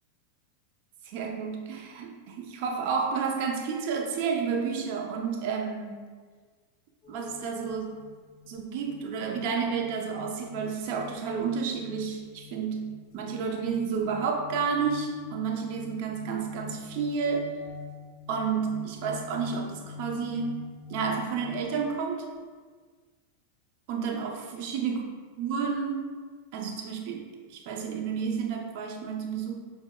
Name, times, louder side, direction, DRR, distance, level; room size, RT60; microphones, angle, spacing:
voice 1, 1.0-6.0 7.1-8.0 8.5-17.5 18.3-20.6 20.9-22.3 23.9-25.0 25.4-26.1 26.5-29.5, right 6 dB, 55° right, 1 dB, 0.5 m, -31 dB
sound 1, 7.0-21.8, left 6 dB, 50° left, 0.8 m, -45 dB
5.2 x 2.1 x 2.2 m, 1.5 s
hypercardioid pair, 95°, 0 cm